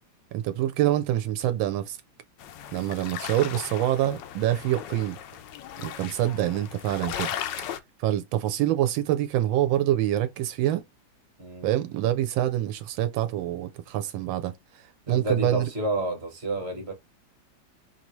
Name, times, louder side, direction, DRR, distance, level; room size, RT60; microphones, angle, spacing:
voice 1, 0.3-2.0 2.7-5.2 5.8-7.3 8.0-10.8 11.6-14.5 15.1-15.7, right 13 dB, 85° right, 1.3 m, -26 dB
sound 1, 2.4-7.8, left 10 dB, 75° left, 1.2 m, -37 dB
voice 2, 11.4-11.7 15.1-16.9, right 2 dB, 40° right, 1.3 m, -30 dB
4.9 x 2.7 x 3.0 m
omnidirectional pair, 2.1 m